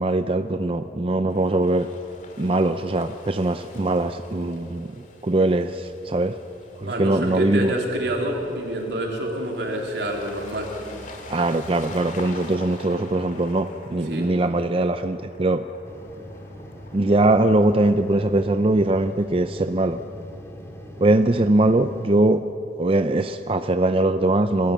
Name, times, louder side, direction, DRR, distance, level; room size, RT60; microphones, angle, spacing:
voice 1, 0.0-1.9 2.4-4.9 5.2-6.4 6.8-7.7 11.3-15.6 16.9-20.0 21.0-22.4 22.8-24.7, right 2 dB, 30° right, 9 dB, 0.5 m, -21 dB
sound 1, 1.3-18.9, left 2 dB, 45° left, 2.4 m, -45 dB
voice 2, 6.8-10.7 14.1-14.3, right 1 dB, 75° right, 0 dB, 3.7 m, -27 dB
sound 2, 15.8-22.1, equal, 15° left, 2.1 m, -41 dB
28.0 x 15.0 x 7.3 m, 2.9 s
head